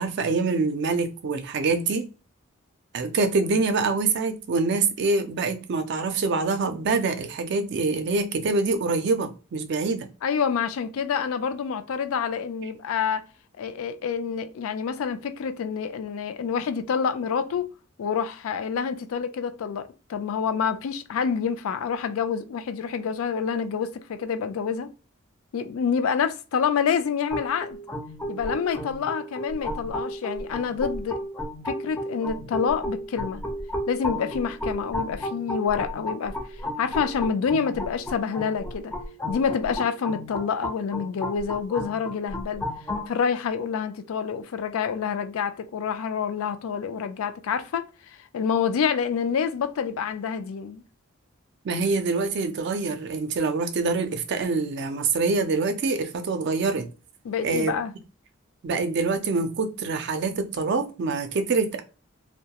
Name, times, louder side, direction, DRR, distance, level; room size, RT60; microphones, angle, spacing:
voice 1, 0.0-2.1 2.9-10.1 51.6-56.9 57.4-57.7 58.6-61.8, right 3 dB, 55° right, 0.4 m, -25 dB
voice 2, 10.2-13.2 13.6-17.7 18.0-24.9 25.5-27.8 28.3-31.2 31.7-33.4 33.9-36.4 36.8-38.9 39.3-42.6 43.1-47.8 48.3-50.8 57.3-57.9, left 6 dB, 80° left, 0.4 m, -27 dB
sound 1, 27.3-43.1, left 1 dB, 10° left, 0.4 m, -33 dB
2.2 x 2.1 x 2.8 m
head